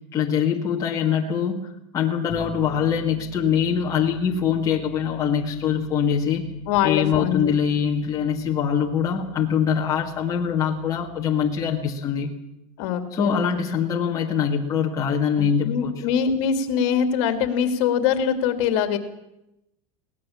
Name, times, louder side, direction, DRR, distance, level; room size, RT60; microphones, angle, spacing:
voice 1, 0.1-1.6 1.9-6.4 6.8-12.3 13.1-15.9, left 8 dB, 20° left, -1 dB, 1.8 m, -23 dB
Bass guitar, 2.3-12.2, right 4 dB, 20° right, 4.5 m, -41 dB
voice 2, 6.7-7.5 12.8-13.4 15.4-19.0, left 8 dB, 55° left, 9 dB, 2.7 m, -23 dB
22.5 x 18.0 x 7.3 m, 0.86 s
supercardioid pair, 170°, 18 cm